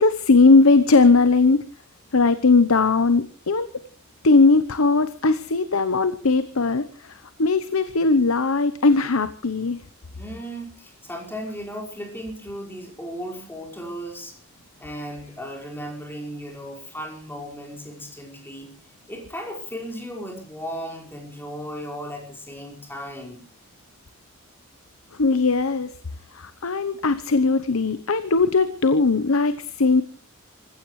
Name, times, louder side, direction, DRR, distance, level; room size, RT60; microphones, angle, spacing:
voice 1, 0.0-1.6 2.1-3.7 4.2-9.8 25.2-25.9 26.3-30.0, left 3 dB, 85° left, 13 dB, 1.0 m, -19 dB
voice 2, 10.2-14.4 14.8-18.7 19.1-23.4, equal, 10° left, 0 dB, 5.2 m, -36 dB
27.5 x 15.5 x 3.2 m, 0.41 s
head